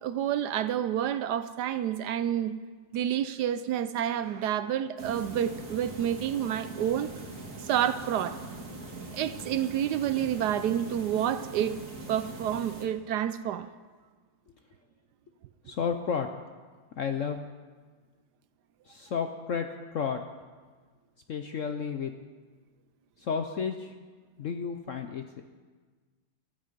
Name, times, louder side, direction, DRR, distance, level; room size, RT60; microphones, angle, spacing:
voice 1, 0.0-2.5 2.9-7.1 7.6-8.4 9.1-11.8 12.1-13.7, right 10 dB, 70° right, 13 dB, 1.0 m, -29 dB
sound 1, 5.0-12.8, right 2 dB, 45° right, 2.2 m, -42 dB
voice 2, 15.6-16.3 17.0-17.4 18.9-20.2 21.3-22.1 23.2-23.9 24.4-25.4, left 6 dB, 65° left, 6 dB, 0.8 m, -32 dB
14.5 x 14.0 x 5.2 m, 1.4 s
omnidirectional pair, 2.0 m